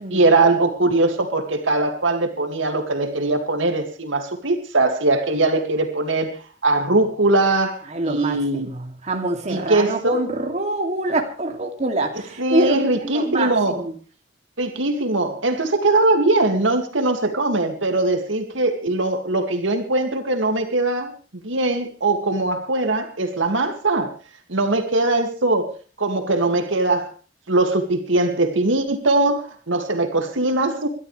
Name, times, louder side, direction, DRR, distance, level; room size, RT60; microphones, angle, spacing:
voice 1, 0.0-8.7 9.5-10.2 12.4-13.8 14.6-21.1 21.4-24.1 24.5-25.7 26.0-27.1 27.5-30.9, right 2 dB, 75° right, 2.2 m, -21 dB
voice 2, 7.9-13.9, right 2 dB, 35° right, 2.6 m, -25 dB
28.0 x 12.5 x 3.3 m
head